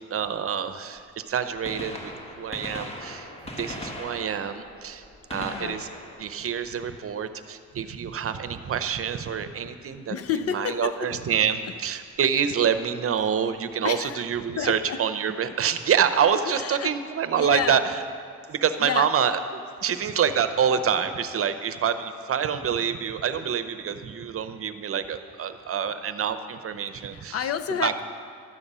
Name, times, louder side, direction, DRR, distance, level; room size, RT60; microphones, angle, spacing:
voice 1, 0.1-3.3 3.6-5.0 5.3-5.9 6.2-10.2 10.5-18.0 18.5-27.4 27.8-27.9, right 8 dB, 50° right, 11 dB, 0.7 m, -26 dB
Gunshot gunfire, 1.0-1.1 1.5-7.4 9.3-9.4 10.5-10.6 12.1-12.2 13.6-13.7 13.9-14.0, left 1 dB, 20° left, 1.7 m, -39 dB
voice 2, 5.3-5.8 10.1-11.2 13.8-14.2 14.6-15.0 15.4-15.5 16.5-16.9 17.3-17.8 18.8-19.1 27.0-28.0, left 8 dB, 50° left, 11 dB, 0.6 m, -30 dB
12.5 x 8.6 x 5.5 m, 2.2 s
cardioid pair, 90°, 30 cm